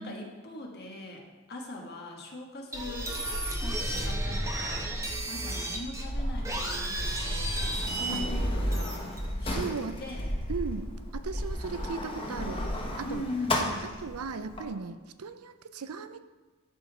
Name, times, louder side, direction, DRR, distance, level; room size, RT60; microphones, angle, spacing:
voice 1, 0.0-3.2 3.6-9.1 9.4-10.3 13.0-13.9, left 2 dB, 50° left, 1 dB, 1.5 m, -40 dB
sound 1, 2.7-9.5, right 1 dB, 15° right, 1.0 m, -32 dB
Sliding door, 6.0-14.6, left 1 dB, 25° left, 1.1 m, -35 dB
voice 2, 9.5-10.0 10.5-12.6 13.0-13.2 14.0-16.2, right 4 dB, 90° right, 11 dB, 0.6 m, -37 dB
11.5 x 5.3 x 4.9 m, 1.3 s
head